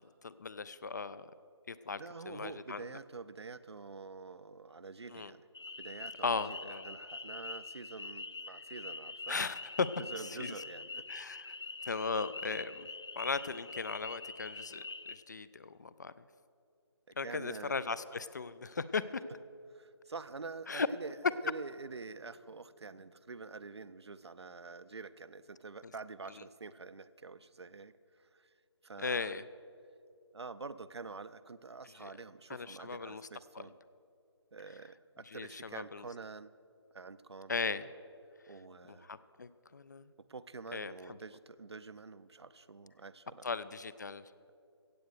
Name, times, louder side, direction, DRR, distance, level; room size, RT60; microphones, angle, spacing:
voice 1, 0.2-1.3 1.7-2.9 5.1-5.3 6.2-6.8 9.3-9.9 10.2-10.5 11.1-11.6 11.9-12.9 13.2-16.1 17.2-19.2 20.7-20.9 29.0-29.4 32.0-32.1 32.5-33.2 33.5-33.7 35.3-36.1 37.5-37.9 38.9-40.1 40.7-41.2 43.4-44.3, left 4 dB, 40° left, 16 dB, 0.4 m, -37 dB
voice 2, 2.0-5.4 5.8-9.4 10.0-11.1 17.1-17.7 19.7-21.2 21.4-27.9 28.2-28.5 28.8-29.4 30.3-33.7 34.5-36.5 36.9-37.5 38.5-39.1 40.3-43.5, right 4 dB, 70° right, 14 dB, 0.6 m, -47 dB
sound 1, 5.5-15.1, left 3 dB, 75° left, 0.7 m, -45 dB
15.5 x 8.0 x 6.4 m, 2.5 s
figure-of-eight pair, 155°, 14 cm